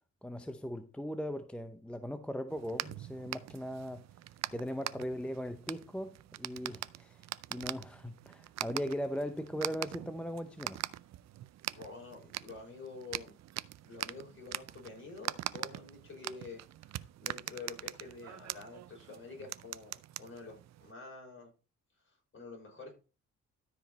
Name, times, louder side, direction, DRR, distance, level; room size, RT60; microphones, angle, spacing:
voice 1, 0.2-4.0 4.5-10.8, equal, 5° left, 0.7 m, -39 dB
sound 1, 2.5-20.9, right 14 dB, 60° right, 0.5 m, -43 dB
voice 2, 11.8-13.4 13.8-21.5 22.0-23.0, left 3 dB, 40° left, 5.6 m, -48 dB
13.0 x 5.1 x 4.2 m
cardioid pair, 90°, 30 cm